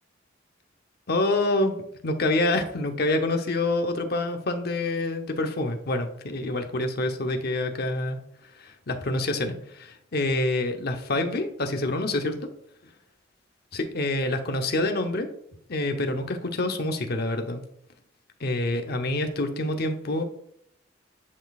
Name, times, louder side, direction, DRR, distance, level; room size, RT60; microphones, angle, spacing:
voice 1, 1.1-1.7 2.0-8.2 8.6-12.5 13.7-15.3 15.7-17.6 18.4-20.2, left 2 dB, 55° left, 6 dB, 0.8 m, -27 dB
9.7 x 4.0 x 2.4 m, 0.70 s
head